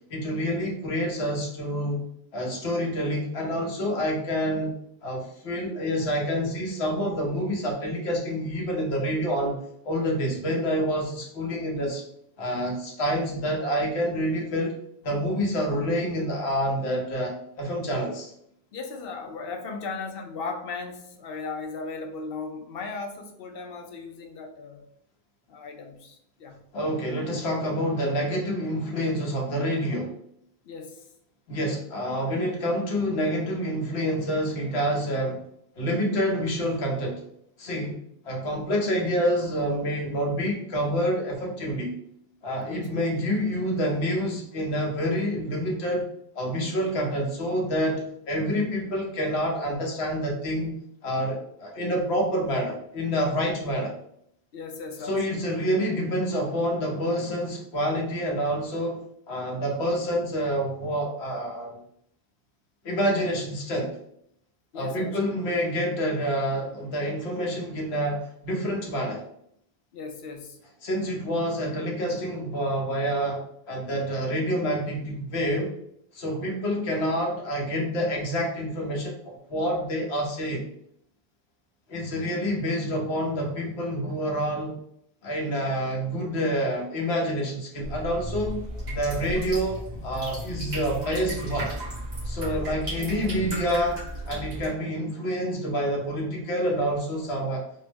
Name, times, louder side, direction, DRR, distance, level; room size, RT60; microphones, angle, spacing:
voice 1, 0.1-2.0 2.3-9.6 9.8-12.0 12.4-14.7 15.0-18.3 26.7-30.1 31.5-35.4 35.8-37.2 37.6-38.0 38.2-41.9 42.4-46.1 46.3-50.7 51.0-53.9 55.0-61.8 62.8-64.0 64.7-69.2 70.8-75.7 76.1-80.6 81.9-84.8 85.2-88.6 88.9-91.7 92.2-97.6, equal, 85° left, 0 dB, 1.2 m, -27 dB
voice 2, 18.7-24.8 25.5-26.6 30.7-31.0 42.6-42.9 54.5-55.4 64.7-65.2 69.9-70.6 92.5-92.7, left 4 dB, 70° left, 5 dB, 0.8 m, -37 dB
sound 1, 87.8-94.7, right 1 dB, 70° right, 1.9 m, -34 dB
4.4 x 2.0 x 3.3 m, 0.71 s
omnidirectional pair, 1.1 m